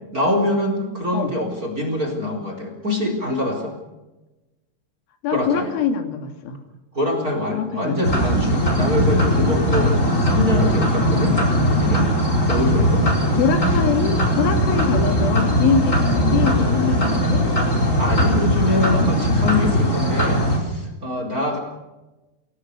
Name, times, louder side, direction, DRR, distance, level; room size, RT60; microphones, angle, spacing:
voice 1, 0.1-3.8 5.3-5.7 6.9-11.4 11.7-12.1 12.5-13.1 18.0-21.6, left 1 dB, 20° right, 4 dB, 4.0 m, -24 dB
voice 2, 5.2-6.6 7.0-8.5 10.2-11.0 13.4-17.4 21.5-21.6, left 6 dB, 75° left, 6 dB, 4.6 m, -25 dB
sound 1, 8.0-20.6, equal, 15° left, 4.1 m, -19 dB
28.5 x 18.0 x 6.7 m, 1.1 s
omnidirectional pair, 5.5 m